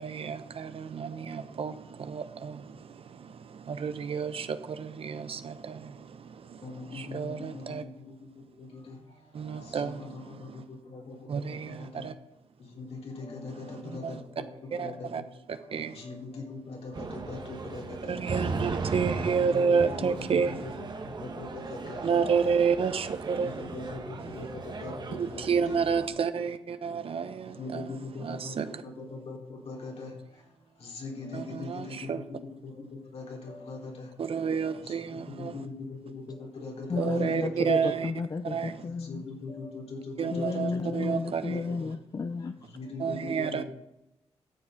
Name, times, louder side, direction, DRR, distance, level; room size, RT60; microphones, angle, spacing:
voice 1, 0.0-7.8 9.3-10.6 11.3-12.1 13.9-14.2 14.7-15.2 15.7-16.0 18.1-20.5 22.0-23.6 25.2-27.9 28.2-28.7 31.3-32.2 34.2-35.6 37.0-38.1 38.5-38.7 40.2-41.6 43.0-43.6, right 6 dB, 60° right, 0.9 m, -30 dB
voice 2, 6.6-12.1 12.6-14.2 14.6-15.2 15.5-18.5 19.0-22.6 23.4-25.8 27.4-30.4 30.8-32.2 32.6-34.4 34.6-38.0 38.7-40.9 41.5-41.9 42.7-43.6, left 3 dB, 70° left, 3.4 m, -41 dB
sound 1, 16.9-26.1, right 4 dB, 45° right, 1.2 m, -37 dB
voice 3, 36.9-39.2 40.3-42.8, left 4 dB, 35° left, 0.5 m, -32 dB
12.5 x 7.3 x 5.1 m
cardioid pair, 90°, 11 cm